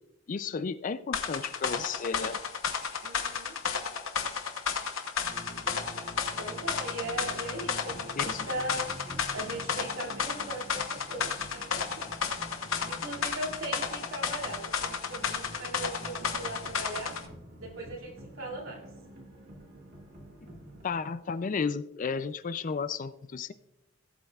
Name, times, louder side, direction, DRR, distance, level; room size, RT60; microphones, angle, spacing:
voice 1, 0.3-2.4 8.2-8.5 20.8-23.5, left 5 dB, 40° left, 14 dB, 0.4 m, -33 dB
sound 1, 1.1-17.2, left 6 dB, 75° left, 1.0 m, -33 dB
voice 2, 3.0-3.6 6.4-8.9 9.3-12.1 12.9-17.2 17.6-18.8, right 1 dB, 80° right, -1 dB, 2.7 m, -39 dB
sound 2, 5.2-20.8, right 1 dB, 55° right, 1.9 m, -47 dB
18.0 x 7.7 x 2.4 m, 0.92 s
head